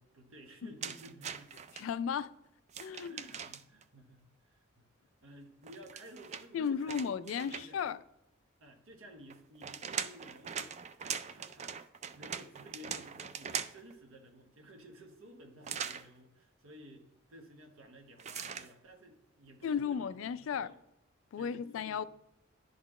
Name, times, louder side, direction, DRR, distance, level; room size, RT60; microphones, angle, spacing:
voice 1, 0.0-1.5 2.9-4.9 5.2-7.8 8.6-10.8 11.1-11.8 12.1-20.2 20.5-20.8 21.4-22.1, equal, 75° right, 1.1 m, -54 dB
sound 1, 0.8-1.8 2.7-3.8 5.6-7.9 9.3-13.9 15.6-16.1 18.2-18.7, right 7 dB, 35° right, 0.3 m, -41 dB
voice 2, 1.8-2.3 2.8-3.2 6.5-8.0 19.6-20.7 21.3-22.0, left 7 dB, 70° left, 0.3 m, -34 dB
11.0 x 4.1 x 3.1 m
head